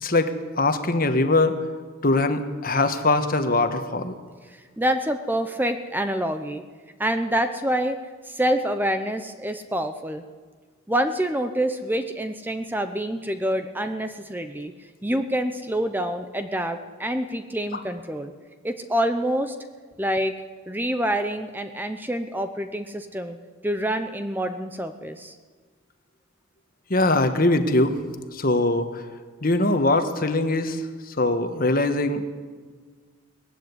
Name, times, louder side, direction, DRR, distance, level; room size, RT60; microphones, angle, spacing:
voice 1, 0.0-1.6 2.0-4.1 26.9-28.0 28.3-29.0 29.4-32.2, left 2 dB, 45° left, 8 dB, 1.5 m, -22 dB
voice 2, 4.5-6.6 7.0-10.2 10.9-14.7 15.0-18.3 18.6-19.6 20.0-20.4 20.7-23.4 23.6-25.3, equal, 10° right, 8 dB, 0.8 m, -26 dB
19.5 x 15.0 x 9.7 m, 1.5 s
head